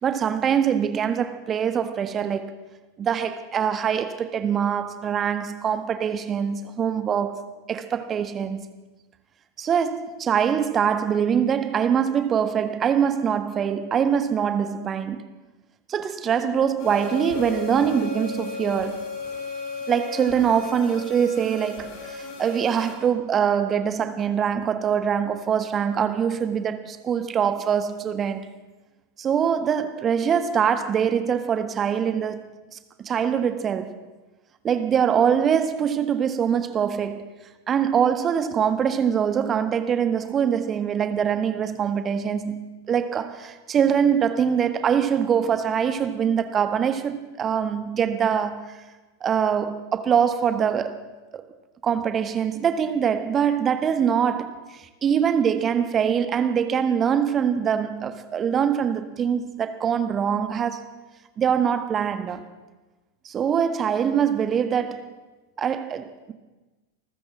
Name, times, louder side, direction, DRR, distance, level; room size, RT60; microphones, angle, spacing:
voice 1, 0.0-2.5 3.0-8.6 9.6-15.3 15.9-19.0 19.9-28.5 29.2-32.4 32.7-34.0 34.6-37.3 37.7-48.8 49.2-51.0 51.3-51.4 51.8-60.8 61.4-62.4 63.2-65.1 65.6-66.3, right 8 dB, 25° right, 1.6 m, -23 dB
sound 1, 16.8-22.9, left 4 dB, 45° left, 6.2 m, -35 dB
26.5 x 14.5 x 7.4 m
figure-of-eight pair, 90°, 0 cm